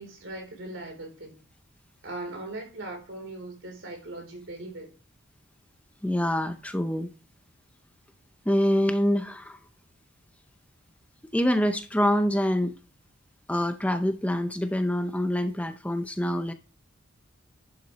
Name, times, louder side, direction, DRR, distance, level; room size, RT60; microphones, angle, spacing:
voice 1, 0.0-1.4 2.0-4.9, right 2 dB, 65° right, 3.7 m, -39 dB
voice 2, 6.0-7.1 8.5-9.6 11.3-12.8 13.5-16.5, equal, 5° left, 0.5 m, -25 dB
11.5 x 7.5 x 3.1 m
head